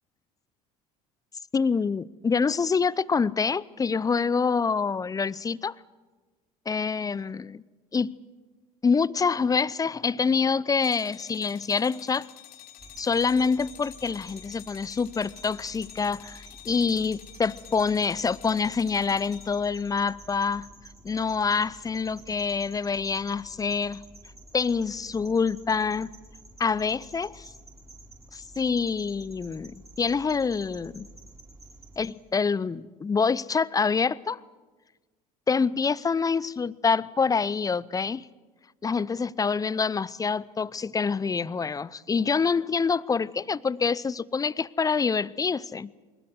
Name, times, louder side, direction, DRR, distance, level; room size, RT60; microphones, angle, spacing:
voice 1, 1.5-5.7 6.7-7.6 7.9-8.1 8.8-12.3 13.0-20.7 21.0-24.0 24.5-26.1 26.6-27.5 28.3-31.1 32.0-34.4 35.5-38.3 38.8-45.9, left 5 dB, 20° left, 0.6 m, -26 dB
sound 1, 10.8-19.8, left 12 dB, 55° left, 2.5 m, -49 dB
sound 2, 12.8-32.1, right 1 dB, 20° right, 6.6 m, -50 dB
24.5 x 21.0 x 7.9 m
figure-of-eight pair, 65°, 19 cm